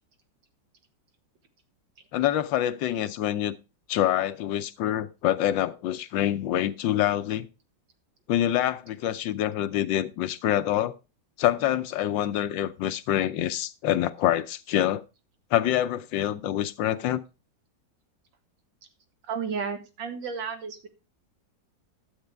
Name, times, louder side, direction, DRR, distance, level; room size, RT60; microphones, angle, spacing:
voice 1, 2.1-3.5 3.9-7.5 8.3-10.9 11.4-15.0 15.5-17.2, left 12 dB, 85° left, 1.4 m, -26 dB
voice 2, 19.3-20.9, right 6 dB, 85° right, 2.1 m, -32 dB
12.0 x 8.1 x 3.4 m
omnidirectional pair, 2.0 m